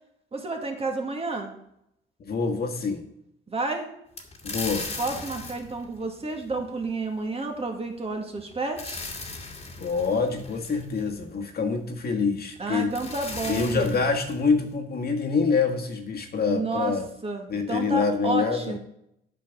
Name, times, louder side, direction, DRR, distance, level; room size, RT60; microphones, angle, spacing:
voice 1, 0.3-1.5 3.5-3.9 5.0-9.0 12.6-14.1 16.4-16.9 17.2-18.8, right 3 dB, 30° right, 3 dB, 1.9 m, -30 dB
voice 2, 2.2-3.1 4.4-4.9 9.8-12.9 13.4-17.1 17.5-18.7, left 4 dB, 50° left, 2 dB, 1.7 m, -26 dB
sound 1, 4.2-6.9 8.4-11.4 12.6-12.7 12.9-14.7, left 3 dB, 30° left, 1.9 m, -38 dB
8.9 x 5.1 x 7.2 m, 0.76 s
cardioid pair, 90°, 20 cm